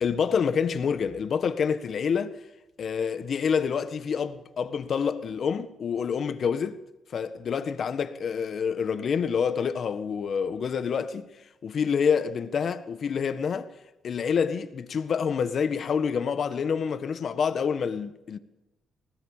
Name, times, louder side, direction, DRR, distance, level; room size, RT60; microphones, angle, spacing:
voice 1, 0.0-2.4 2.8-6.8 7.1-11.3 11.6-13.7 14.0-18.4, left 6 dB, 55° left, 1.6 m, -27 dB
20.5 x 18.0 x 7.3 m
cardioid pair, 90°, 0 cm